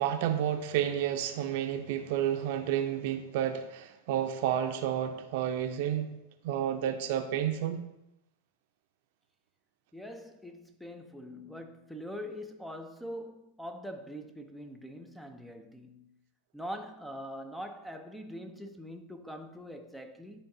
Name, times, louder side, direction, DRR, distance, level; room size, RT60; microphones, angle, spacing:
voice 1, 0.0-6.2 6.4-7.8, right 10 dB, 60° right, 0.6 m, -30 dB
voice 2, 9.9-16.1 16.5-20.4, equal, ahead, 0.5 m, -43 dB
11.0 x 3.8 x 2.7 m
hypercardioid pair, 115°, 0 cm